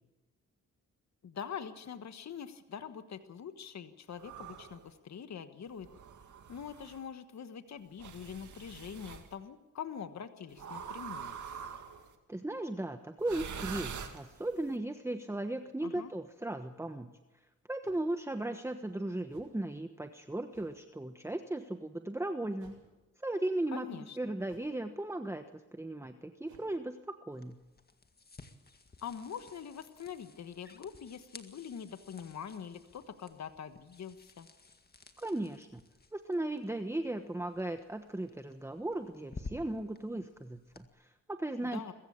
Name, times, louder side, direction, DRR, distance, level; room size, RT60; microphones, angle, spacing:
voice 1, 1.2-5.9 6.5-11.4 15.8-16.1 23.7-24.2 29.0-34.5 41.6-41.9, left 7 dB, 55° left, 10 dB, 1.4 m, -44 dB
sound 1, 4.2-4.8 5.8-7.0 8.0-9.3 10.6-12.1 13.2-14.6, right 7 dB, 65° right, 2.3 m, -44 dB
voice 2, 12.3-17.1 17.7-22.8 23.2-25.4 25.7-27.6 35.2-35.8 36.1-41.9, right 1 dB, 10° right, 7 dB, 1.2 m, -37 dB
sound 2, 17.8-18.1 19.3-19.6 20.5-20.8 22.6-23.0 24.4-24.8 26.4-26.7, right 6 dB, 85° right, 7.4 m, -61 dB
sound 3, 27.3-40.9, left 3 dB, 30° left, 2.0 m, -54 dB
22.0 x 15.0 x 8.8 m, 1.1 s
cardioid pair, 70°, 32 cm